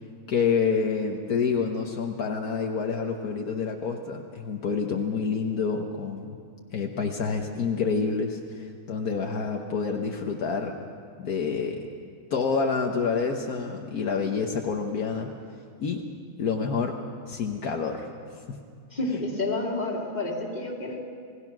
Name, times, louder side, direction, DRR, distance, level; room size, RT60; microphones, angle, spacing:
voice 1, 0.3-6.4 6.7-10.9 11.2-11.8 12.3-15.3 15.8-16.0 16.4-17.0 17.3-18.1 18.5-18.6, left 5 dB, 70° left, 2 dB, 1.6 m, -28 dB
voice 2, 18.9-21.0, left 2 dB, 25° left, -2 dB, 2.9 m, -29 dB
27.5 x 18.5 x 6.1 m, 2.2 s
omnidirectional pair, 1.7 m